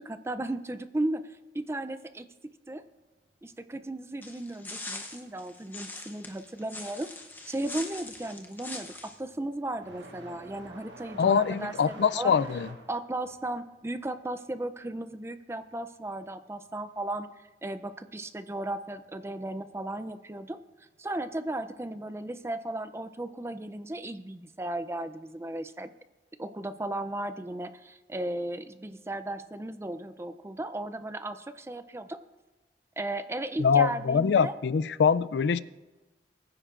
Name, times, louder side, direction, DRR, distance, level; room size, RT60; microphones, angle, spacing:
voice 1, 0.0-2.3 2.7-2.8 3.4-7.1 7.5-12.3 12.9-17.3 17.6-20.6 21.0-25.9 26.4-32.2 33.0-34.5, right 1 dB, 15° right, 11 dB, 0.4 m, -35 dB
sound 1, 4.2-9.2, left 2 dB, 10° left, 0.8 m, -42 dB
sound 2, 7.2-7.5 7.8-16.2 16.5-17.5 18.5-18.6 19.4-19.5 21.2-21.4, right 2 dB, 85° right, 1.5 m, -49 dB
voice 2, 11.2-12.7 33.6-35.6, left 6 dB, 75° left, 18 dB, 0.4 m, -24 dB
21.5 x 10.0 x 2.5 m, 1.2 s
head